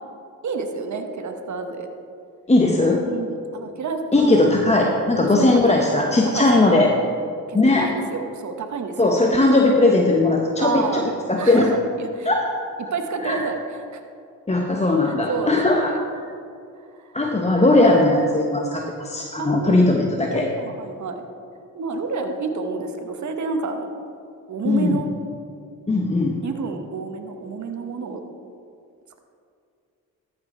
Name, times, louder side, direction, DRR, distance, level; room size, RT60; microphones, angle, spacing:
voice 1, 0.4-1.9 3.1-4.5 5.2-6.1 6.3-6.8 7.5-9.0 10.6-11.1 11.4-11.7 12.0-12.3 12.9-13.6 13.9-14.0 15.3-16.1 16.9-17.1 19.4-20.0 20.3-21.2 21.7-23.9 24.5-25.1 26.4-28.2, right 4 dB, 50° right, 5 dB, 1.1 m, -29 dB
voice 2, 2.5-3.0 4.1-6.9 7.5-7.9 9.0-11.7 12.3-12.5 13.2-13.4 14.5-15.9 17.1-20.5 24.6-25.0 25.9-26.4, left 2 dB, 20° left, 1 dB, 0.9 m, -18 dB
13.5 x 5.3 x 4.3 m, 2.4 s
supercardioid pair, 50°, 37 cm